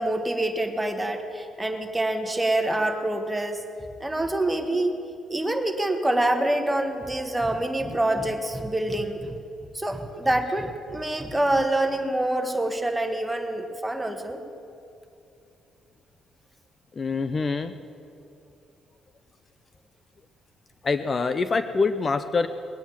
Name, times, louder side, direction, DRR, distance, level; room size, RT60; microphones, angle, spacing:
voice 1, 0.0-3.6 4.0-5.0 5.3-9.3 9.7-14.4, right 1 dB, 10° right, 5 dB, 1.5 m, -26 dB
voice 2, 17.0-17.7 20.8-22.5, left 4 dB, 35° left, 11 dB, 0.6 m, -25 dB
20.0 x 9.1 x 7.2 m, 2.6 s
cardioid pair, 90°, 0 cm